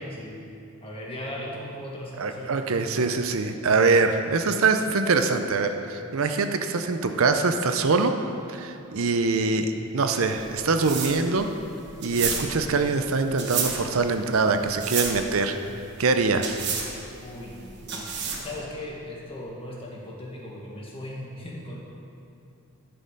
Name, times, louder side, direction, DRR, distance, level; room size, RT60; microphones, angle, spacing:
voice 1, 0.1-0.4 0.8-2.6 17.2-21.8, left 1 dB, 25° left, -4 dB, 1.7 m, -38 dB
voice 2, 2.2-8.2 8.5-11.5 12.0-15.6 16.0-16.6, right 4 dB, 70° right, 7 dB, 0.6 m, -23 dB
sound 1, 10.2-18.6, right 6 dB, 50° right, 1.2 m, -32 dB
11.5 x 6.5 x 5.4 m, 2.6 s
head